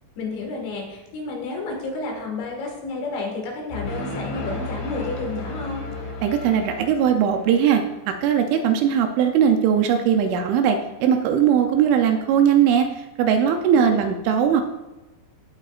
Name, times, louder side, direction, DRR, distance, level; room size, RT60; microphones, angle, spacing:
voice 1, 0.2-5.8 13.7-14.0, left 3 dB, 65° left, 0 dB, 3.8 m, -31 dB
sound 1, 3.7-7.5, left 2 dB, 40° left, 3.2 m, -33 dB
voice 2, 6.2-7.8 8.2-12.9 13.2-14.6, right 8 dB, 80° right, 5 dB, 2.9 m, -19 dB
16.5 x 8.1 x 2.5 m, 1.0 s
omnidirectional pair, 5.8 m